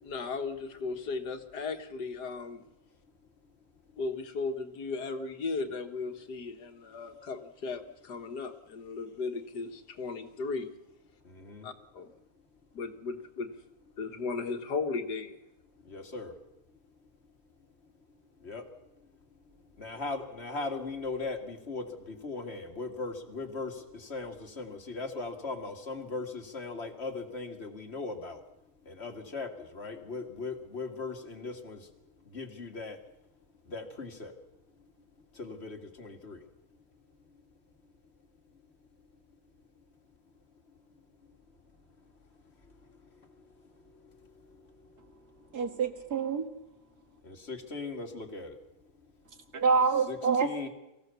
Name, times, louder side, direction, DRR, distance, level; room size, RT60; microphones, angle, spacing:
voice 1, 0.0-2.6 4.0-10.7 11.6-12.1 12.7-13.5 14.0-15.4, left 4 dB, 80° left, 7 dB, 2.1 m, -36 dB
voice 2, 11.3-11.6 15.9-16.3 18.4-18.6 19.8-28.4 28.9-29.5 29.7-31.8 32.3-33.0 33.7-34.3 35.4-36.4 47.2-48.6 50.1-50.7, left 3 dB, 40° left, 6 dB, 2.1 m, -38 dB
voice 3, 45.5-46.5 49.5-50.7, right 5 dB, 70° right, 6 dB, 2.3 m, -27 dB
24.5 x 15.5 x 6.9 m, 0.95 s
omnidirectional pair, 1.7 m